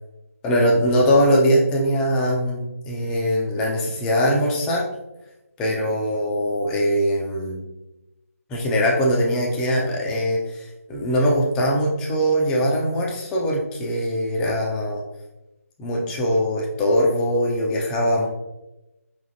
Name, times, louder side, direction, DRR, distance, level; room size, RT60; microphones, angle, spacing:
voice 1, 0.4-4.9 5.6-7.7 8.5-15.0 15.8-18.3, equal, 10° left, -2 dB, 0.4 m, -21 dB
4.7 x 3.4 x 2.6 m, 0.95 s
figure-of-eight pair, 150°, 8 cm